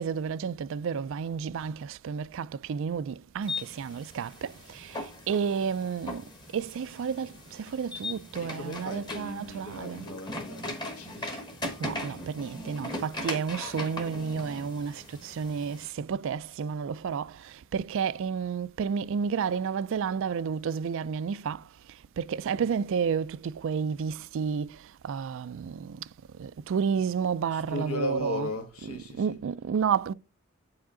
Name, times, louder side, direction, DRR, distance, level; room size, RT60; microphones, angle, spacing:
voice 1, 0.0-10.1 11.3-11.4 11.8-28.5 28.8-30.1, right 6 dB, 60° right, 0.3 m, -31 dB
sound 1, 3.4-15.9, left 2 dB, 20° left, 1.0 m, -39 dB
voice 2, 8.4-11.2 27.5-29.4, left 2 dB, 85° left, 1.5 m, -37 dB
8.2 x 4.8 x 3.7 m
head